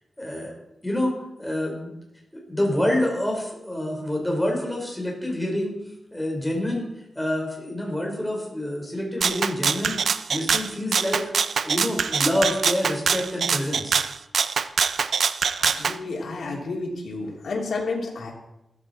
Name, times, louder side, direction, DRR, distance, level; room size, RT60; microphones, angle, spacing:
voice 1, 0.2-0.5 0.8-1.1 1.4-1.9 2.3-5.7 6.1-6.9 7.2-10.0 10.3-11.2 11.6-14.0, left 1 dB, 5° left, -1 dB, 4.3 m, -27 dB
Rattle (instrument), 9.2-16.0, right 6 dB, 75° right, 0.6 m, -24 dB
voice 2, 15.6-18.3, left 3 dB, 90° left, -1 dB, 2.9 m, -31 dB
14.5 x 14.0 x 4.3 m, 0.87 s
wide cardioid pair, 170°, 0 cm